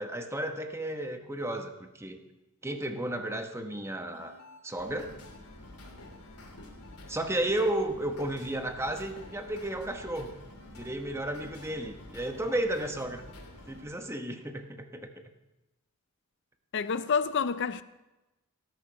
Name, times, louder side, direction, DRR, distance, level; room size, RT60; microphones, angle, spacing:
voice 1, 0.0-2.2 2.6-4.3 4.6-5.2 7.1-10.3 10.7-13.3 13.7-15.1, right 1 dB, 10° right, 1.0 m, -33 dB
sound 1, 4.1-13.8, left 1 dB, 85° left, 3.1 m, -49 dB
voice 2, 16.7-17.8, left 6 dB, 55° left, 0.5 m, -28 dB
18.0 x 9.3 x 5.7 m
head